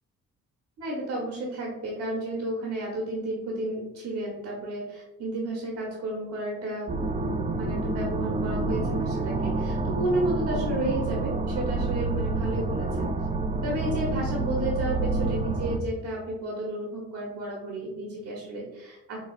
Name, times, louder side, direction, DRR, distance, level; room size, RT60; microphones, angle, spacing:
voice 1, 0.8-7.0 7.6-13.1 13.6-19.3, right 1 dB, 65° right, -2 dB, 1.0 m, -32 dB
sound 1, 6.9-15.8, right 3 dB, 25° right, 0.4 m, -28 dB
4.7 x 2.7 x 2.4 m, 1.0 s
cardioid pair, 90°, 30 cm